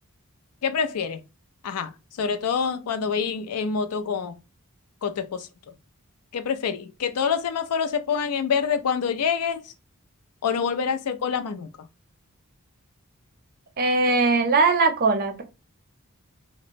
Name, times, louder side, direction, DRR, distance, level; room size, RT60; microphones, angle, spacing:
voice 1, 0.6-1.2 1.6-1.9 2.2-4.3 5.0-5.5 6.3-9.7 10.4-11.7, left 6 dB, 85° left, 0.4 m, -26 dB
voice 2, 13.8-15.4, right 3 dB, 40° right, 0.5 m, -20 dB
3.0 x 2.0 x 2.5 m
head